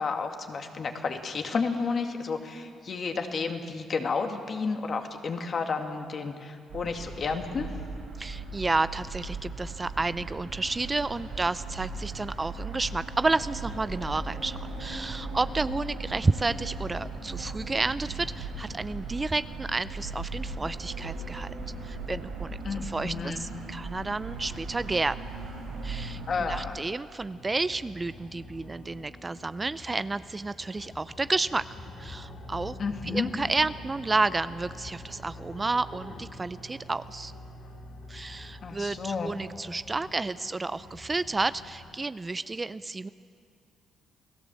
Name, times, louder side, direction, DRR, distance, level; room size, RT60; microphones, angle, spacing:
voice 1, 0.0-7.8 22.6-23.4 26.3-26.8 32.8-33.3 38.6-39.3, left 4 dB, 45° left, 5 dB, 2.2 m, -31 dB
sound 1, 6.7-26.6, right 3 dB, 85° right, 7.4 m, -38 dB
voice 2, 8.2-21.5 21.8-25.2 25.8-31.7 32.0-32.8 33.0-37.3 38.1-43.1, right 3 dB, 25° right, 15 dB, 0.5 m, -31 dB
sound 2, 27.3-41.9, left 1 dB, 70° left, 3.0 m, -46 dB
29.0 x 17.0 x 7.5 m, 2.3 s
cardioid pair, 90°, 0 cm